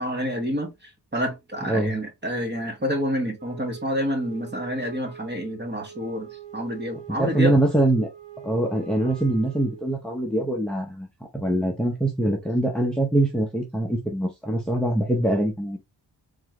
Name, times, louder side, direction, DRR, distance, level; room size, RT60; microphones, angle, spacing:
voice 1, 0.0-7.5, equal, 25° right, 1.4 m, -28 dB
Wind instrument woodwind instrument, 3.4-10.2, right 7 dB, 75° right, 1.2 m, -44 dB
voice 2, 7.1-8.1 8.4-11.1 11.3-15.8, right 1 dB, ahead, 0.7 m, -23 dB
3.8 x 3.1 x 3.0 m
wide cardioid pair, 110°, 43 cm